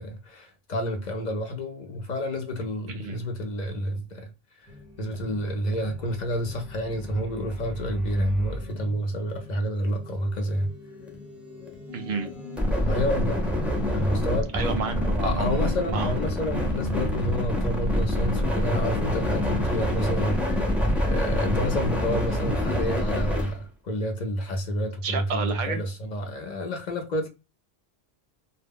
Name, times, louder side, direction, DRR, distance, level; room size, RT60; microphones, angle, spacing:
voice 1, 0.0-4.3 4.6-4.7 5.0-10.7 12.8-13.6 13.9-14.5 15.2-20.8 21.0-27.3, equal, 55° left, 0.6 m, -29 dB
voice 2, 2.9-3.2 11.9-12.3 14.5-15.5 15.9-16.1 16.5-16.6 25.0-25.8, right 5 dB, 60° right, 0.6 m, -30 dB
sound 1, 4.7-23.6, left 1 dB, ahead, 0.3 m, -28 dB
sound 2, 11.9-20.4, equal, 90° left, 0.9 m, -41 dB
2.1 x 2.0 x 3.5 m
omnidirectional pair, 1.0 m